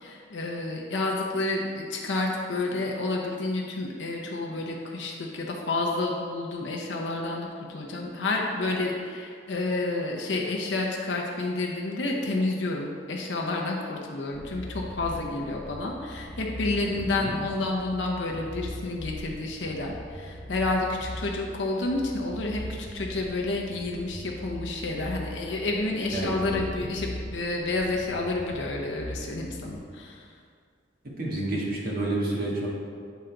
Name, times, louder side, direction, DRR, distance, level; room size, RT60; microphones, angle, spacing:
voice 1, 0.0-30.3, left 2 dB, 75° left, -1 dB, 0.7 m, -30 dB
sound 1, 14.3-29.8, equal, 40° left, 1.0 m, -40 dB
voice 2, 16.9-17.3 26.1-26.6 31.2-32.7, right 2 dB, 55° right, -4 dB, 1.5 m, -29 dB
8.2 x 3.8 x 4.5 m, 2.2 s
head